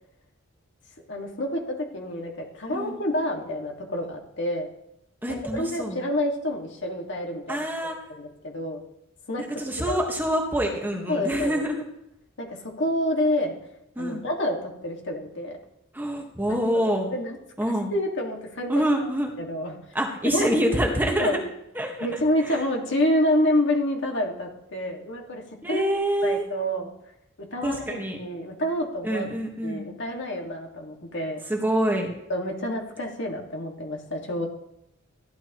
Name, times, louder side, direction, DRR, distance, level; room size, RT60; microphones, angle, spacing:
voice 1, 1.1-4.7 5.3-7.6 8.1-8.8 9.3-9.4 9.8-10.0 11.1-11.6 12.4-13.6 14.0-15.6 16.5-17.4 17.9-18.8 19.4-19.8 20.3-20.5 21.2-21.4 22.0-25.8 26.2-26.9 27.5-29.3 29.6-31.4 32.3-34.5, left 1 dB, 60° left, 0 dB, 2.1 m, -28 dB
voice 2, 5.2-6.0 7.5-8.0 9.6-11.8 14.0-14.2 15.9-17.1 17.6-17.9 18.7-19.3 19.9-21.4 21.7-22.1 22.4-22.6 25.6-26.4 27.6-28.2 29.0-29.9 31.5-32.1, equal, 10° right, 0 dB, 1.5 m, -26 dB
15.0 x 11.5 x 3.1 m, 0.83 s
head